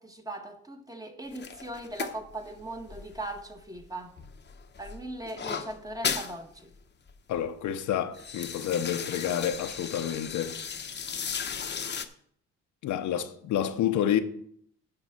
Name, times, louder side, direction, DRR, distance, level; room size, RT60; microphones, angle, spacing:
voice 1, 0.0-4.1 4.8-6.7, right 1 dB, 10° right, 1.3 m, -39 dB
sound 1, 1.3-3.9 4.2-6.4 6.7-6.8 7.1-7.5 7.9-12.1, left 6 dB, 35° left, 0.9 m, -36 dB
voice 2, 7.3-10.6 12.8-14.2, left 10 dB, 80° left, 0.9 m, -29 dB
9.1 x 6.2 x 5.8 m
cardioid pair, 90°, 30 cm